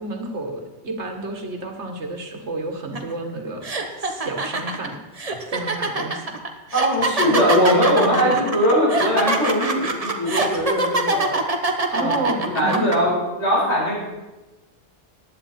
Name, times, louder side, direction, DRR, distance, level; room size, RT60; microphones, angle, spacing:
voice 1, 0.0-3.7 4.0-5.0 5.5-6.3 7.2-7.5 8.2-8.5 11.9-13.2, right 2 dB, 75° right, 4 dB, 1.9 m, -30 dB
sound 1, 3.0-3.1 3.6-13.0, right 2 dB, 35° right, 1.1 m, -23 dB
voice 2, 6.7-11.4 11.9-12.2 12.5-13.9, equal, 75° left, -5 dB, 5.5 m, -20 dB
15.0 x 10.5 x 4.3 m, 1.1 s
omnidirectional pair, 1.2 m